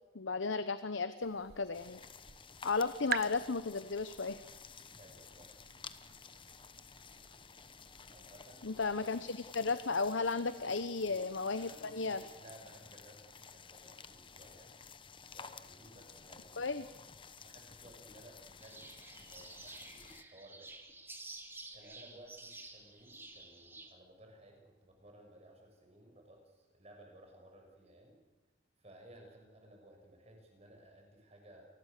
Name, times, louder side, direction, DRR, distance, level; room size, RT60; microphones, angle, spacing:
voice 1, 0.1-2.0 2.6-4.4 8.6-12.2 16.6-16.9, left 4 dB, 90° left, 12 dB, 0.9 m, -34 dB
sound 1, 1.2-9.1, right 8 dB, 55° right, 0.8 m, -47 dB
sound 2, 1.7-20.2, left 5 dB, 25° left, 1.0 m, -53 dB
voice 2, 5.0-5.7 8.1-8.9 11.0-11.2 11.5-14.7 15.3-16.8 17.4-20.7 21.7-28.2 28.8-31.7, right 1 dB, 35° right, 2 dB, 6.9 m, -58 dB
sound 3, 18.6-23.9, right 2 dB, 10° right, 2.4 m, -51 dB
27.5 x 20.0 x 6.7 m, 1.2 s
head